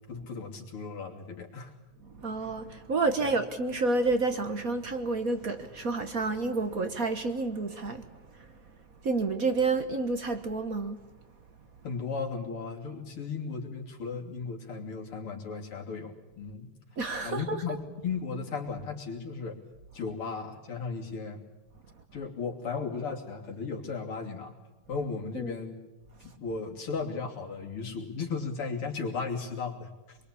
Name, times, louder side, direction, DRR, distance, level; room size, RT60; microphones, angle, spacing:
voice 1, 0.1-1.7 3.2-3.4 11.8-16.7 17.2-19.6 19.9-21.4 22.1-24.5 24.9-25.8 26.2-30.2, left 4 dB, 80° left, 3.9 m, -35 dB
voice 2, 2.0-8.5 9.0-11.0 17.0-17.6 25.3-25.6, right 3 dB, 45° right, 1.5 m, -29 dB
25.0 x 22.5 x 8.5 m
omnidirectional pair, 2.4 m